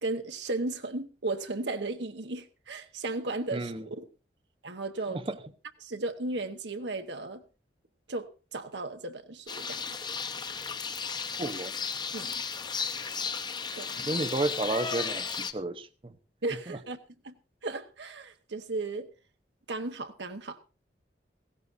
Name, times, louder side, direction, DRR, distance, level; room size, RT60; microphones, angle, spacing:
voice 1, 0.0-4.0 4.6-5.2 5.8-7.4 8.1-9.8 12.1-12.4 13.8-14.1 16.4-17.0 17.2-17.4 17.6-19.1 19.7-20.6, right 2 dB, 85° right, 1.2 m, -35 dB
voice 2, 3.5-3.9 5.1-5.4 11.4-11.7 14.1-16.2 16.7-16.8, right 2 dB, 30° right, 0.8 m, -32 dB
sound 1, 9.5-15.5, left 5 dB, 25° left, 0.8 m, -34 dB
17.0 x 16.0 x 2.6 m
head